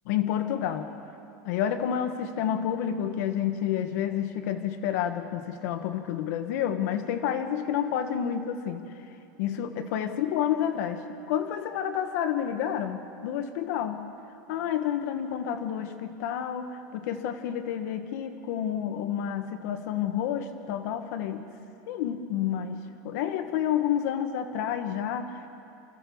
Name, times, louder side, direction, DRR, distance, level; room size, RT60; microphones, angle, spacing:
voice 1, 0.1-0.9 1.4-8.8 9.4-14.0 14.5-21.4 21.9-25.5, left 9 dB, 70° left, 7 dB, 1.4 m, -29 dB
28.5 x 14.5 x 7.1 m, 2.7 s
supercardioid pair, 140°, 9 cm